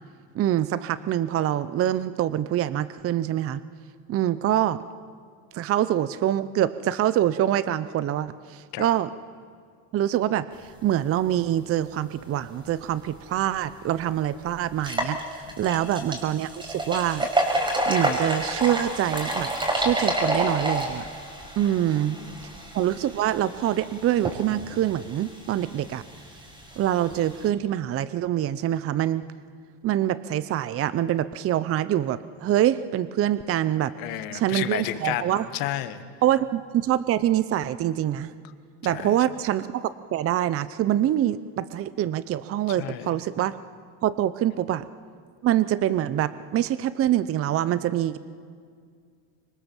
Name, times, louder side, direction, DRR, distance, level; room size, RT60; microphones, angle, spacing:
voice 1, 0.3-3.6 4.1-4.8 5.5-9.1 9.9-17.3 17.9-19.5 19.8-21.1 21.6-22.2 22.7-26.0 26.8-29.2 29.8-33.9 34.3-35.5 36.2-38.3 38.8-43.6 44.0-44.8 45.4-48.2, right 12 dB, 40° right, 15 dB, 0.7 m, -25 dB
sound 1, 13.5-13.6 14.0-14.1 14.7-27.5, right 1 dB, 15° right, 5.1 m, -29 dB
voice 2, 21.6-22.4 34.0-36.0 38.9-39.1 42.8-43.1, left 13 dB, 75° left, 11 dB, 1.7 m, -32 dB
25.5 x 23.5 x 7.2 m, 2.1 s
cardioid pair, 125°, 36 cm